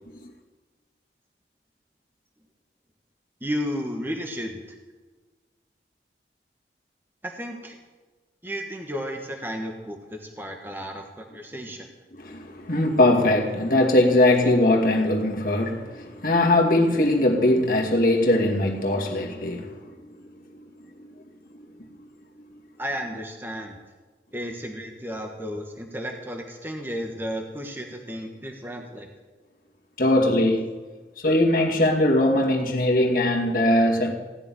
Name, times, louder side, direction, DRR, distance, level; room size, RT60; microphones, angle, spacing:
voice 1, 3.4-4.8 7.2-7.8 8.4-11.9 22.8-23.8 24.3-29.1, equal, 10° right, 1.5 m, -33 dB
voice 2, 12.1-19.8 21.0-21.1 21.5-21.6 22.0-22.1 30.0-30.8 31.2-34.1, left 1 dB, 50° left, 2.3 m, -21 dB
16.5 x 7.0 x 10.0 m
head